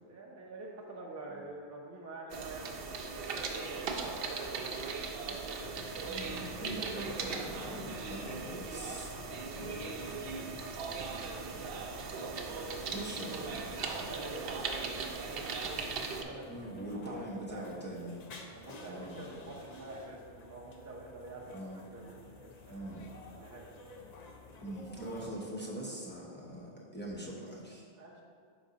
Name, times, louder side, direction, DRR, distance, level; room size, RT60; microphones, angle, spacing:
voice 1, 0.0-5.1 11.3-13.0 13.8-16.7 17.0-17.8 18.5-21.7 21.9-23.9 27.9-28.2, right 2 dB, 20° right, -4 dB, 0.6 m, -47 dB
sound 1, 2.3-16.2, right 4 dB, 70° right, 0.8 m, -39 dB
sound 2, 5.6-25.3, left 2 dB, 50° left, 0.6 m, -52 dB
voice 2, 6.0-9.1 12.9-13.7 16.5-18.1 18.8-19.2 21.5-21.8 22.7-23.0 24.6-27.9, right 1 dB, 10° left, -6 dB, 0.9 m, -42 dB
5.2 x 4.1 x 5.0 m, 2.2 s
omnidirectional pair, 1.0 m